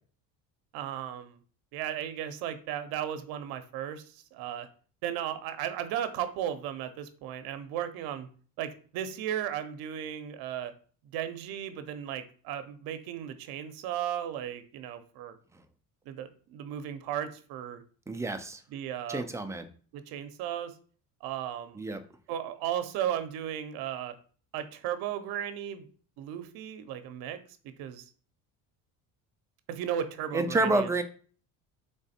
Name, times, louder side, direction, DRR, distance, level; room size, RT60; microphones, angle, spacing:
voice 1, 0.7-1.4 1.7-4.7 5.0-8.3 8.6-10.7 11.1-15.3 16.1-17.8 18.7-19.3 19.9-20.7 21.2-21.8 22.3-24.1 24.5-25.9 26.2-27.4 27.6-28.1 29.7-30.9, right 10 dB, 75° right, 10 dB, 0.7 m, -35 dB
voice 2, 18.1-18.6 19.1-19.7 21.7-22.0 30.3-31.0, right 2 dB, 10° right, 7 dB, 0.3 m, -29 dB
3.6 x 3.3 x 4.1 m, 0.43 s
cardioid pair, 125°, 37 cm